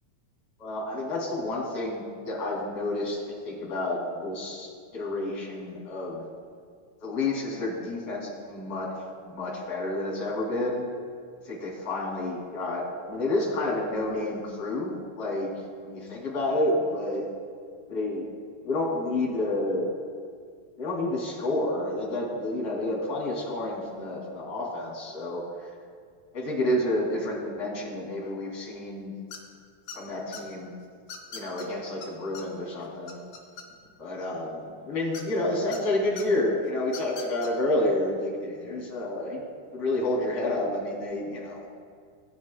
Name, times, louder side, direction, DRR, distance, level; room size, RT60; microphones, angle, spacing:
voice 1, 0.6-3.2 3.4-6.2 7.0-8.9 9.2-10.8 11.4-15.5 15.8-17.2 17.9-18.3 18.6-19.9 20.8-25.7 26.3-29.1 29.9-30.7 31.3-33.2 34.0-39.5 39.7-41.6, left 1 dB, 40° left, -4 dB, 3.3 m, -29 dB
sound 1, 29.3-29.6 29.9-30.4 31.1-31.7 32.0-32.1 32.3-32.4 32.8-34.0 35.1-35.8 36.2-36.3 36.8-37.5, left 5 dB, 70° left, 1.2 m, -40 dB
19.0 x 10.5 x 2.2 m, 2.1 s
omnidirectional pair, 4.4 m